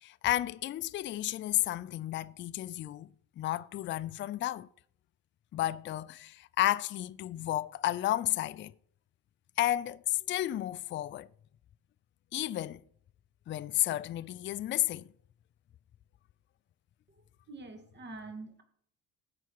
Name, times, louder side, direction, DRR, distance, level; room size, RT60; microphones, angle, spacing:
voice 1, 0.0-3.1 3.4-4.7 5.5-8.7 9.6-11.3 12.3-12.8 13.5-15.1, left 14 dB, 35° left, 0.4 m, -32 dB
voice 2, 17.5-18.6, right 3 dB, 30° right, 2.2 m, -45 dB
19.0 x 6.8 x 4.7 m
cardioid pair, 120°, 36 cm